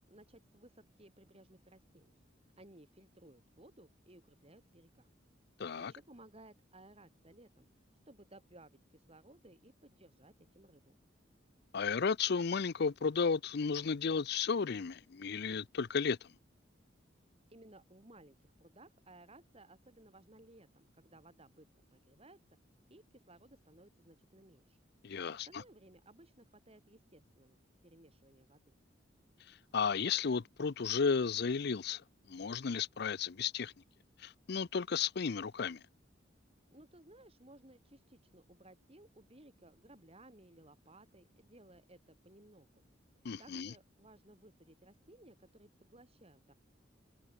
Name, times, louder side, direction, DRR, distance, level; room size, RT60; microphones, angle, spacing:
voice 1, 0.1-2.2 2.6-5.1 5.8-7.7 8.1-11.0 17.5-21.7 21.9-22.6 22.9-24.8 25.3-28.7 36.7-42.9 43.4-46.5, right 1 dB, 30° right, 5.2 m, -59 dB
voice 2, 5.6-5.9 11.7-16.3 25.0-25.5 29.7-32.0 32.3-33.7 34.2-35.8 43.2-43.7, left 5 dB, 60° left, 0.5 m, -33 dB
head